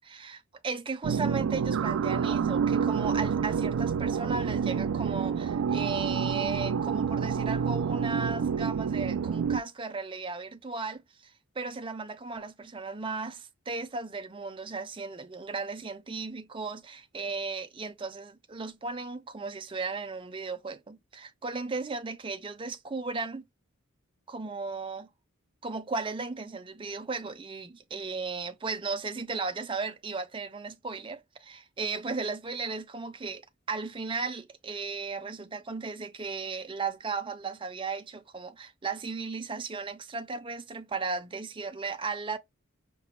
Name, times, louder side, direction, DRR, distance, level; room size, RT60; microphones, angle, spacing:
voice 1, 0.1-23.4 24.3-25.1 25.6-42.4, right 4 dB, 25° right, 0.5 m, -36 dB
sound 1, 1.0-9.6, right 6 dB, 75° right, 0.3 m, -28 dB
5.9 x 2.2 x 2.9 m
head